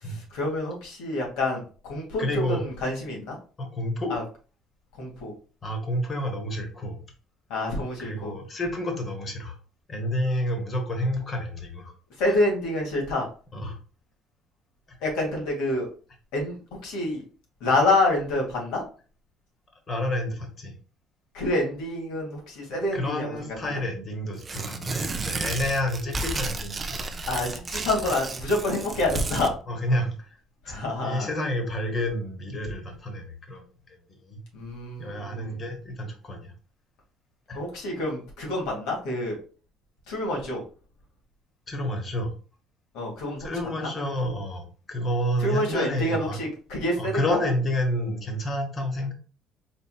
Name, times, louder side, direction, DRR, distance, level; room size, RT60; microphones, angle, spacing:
voice 1, 0.0-3.4 4.1-4.2 5.0-5.3 7.5-8.3 12.2-13.3 15.0-15.9 16.3-17.3 17.6-18.8 21.3-23.7 27.3-29.6 30.6-31.3 34.5-35.6 37.5-39.4 40.1-40.6 42.9-43.7 45.4-47.4, left 2 dB, 85° left, -1 dB, 2.0 m, -27 dB
voice 2, 2.2-2.6 3.6-4.1 5.6-7.0 8.0-9.6 9.9-11.9 12.3-12.4 13.5-13.8 14.9-15.0 19.9-20.7 22.9-27.4 29.7-30.3 31.0-34.4 35.0-36.5 37.5-37.6 41.7-42.3 43.4-46.4 47.0-49.1, left 1 dB, 25° left, 4 dB, 1.0 m, -29 dB
Tearing, 24.4-29.5, right 3 dB, 20° right, 0.4 m, -32 dB
4.2 x 4.2 x 2.3 m, 0.37 s
cardioid pair, 175°, 0 cm